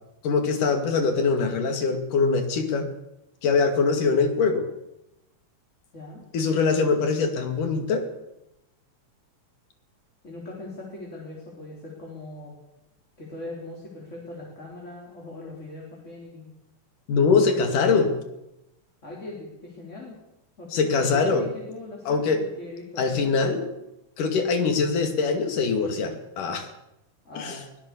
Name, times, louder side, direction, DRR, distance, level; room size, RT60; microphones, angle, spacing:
voice 1, 0.2-2.9 3.4-4.6 6.3-8.1 17.1-18.1 20.7-21.5 22.1-22.4 23.0-23.6 24.2-26.7 27.4-27.6, left 4 dB, 80° left, 6 dB, 3.9 m, -23 dB
voice 2, 10.2-12.5 13.2-16.5 19.0-20.2 20.6-23.7 27.2-27.7, left 2 dB, 20° left, -2 dB, 4.3 m, -40 dB
23.5 x 16.5 x 6.9 m, 0.89 s
omnidirectional pair, 3.7 m